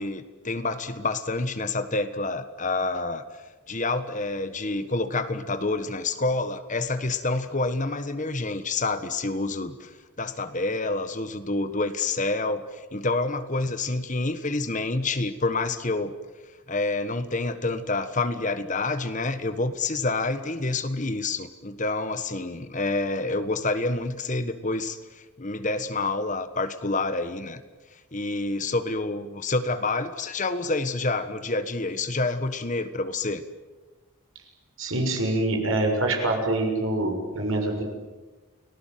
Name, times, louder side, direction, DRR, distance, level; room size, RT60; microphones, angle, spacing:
voice 1, 0.0-16.2 16.7-27.6 28.1-33.4, left 3 dB, 35° left, 11 dB, 1.4 m, -28 dB
voice 2, 34.8-37.8, right 2 dB, 70° right, 2 dB, 6.9 m, -25 dB
30.0 x 19.0 x 9.3 m, 1.2 s
head